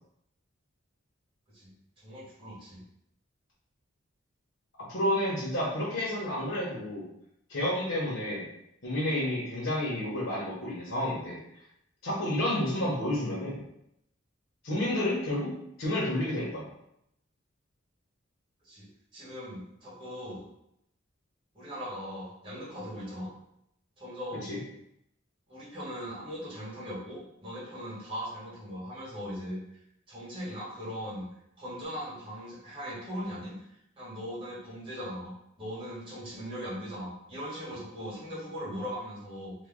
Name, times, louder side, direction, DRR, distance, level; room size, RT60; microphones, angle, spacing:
voice 1, 2.0-2.8 18.6-20.4 21.5-23.3 24.0-24.5 25.5-29.8 30.1-31.3 31.6-33.5 34.0-39.5, equal, 25° right, -9 dB, 1.5 m, -39 dB
voice 2, 4.9-7.0 7.5-8.4 8.8-11.4 12.0-13.6 14.6-15.5 15.8-16.7 24.5-24.6, left 1 dB, 65° left, -7 dB, 0.9 m, -30 dB
3.0 x 2.2 x 3.6 m, 0.77 s
head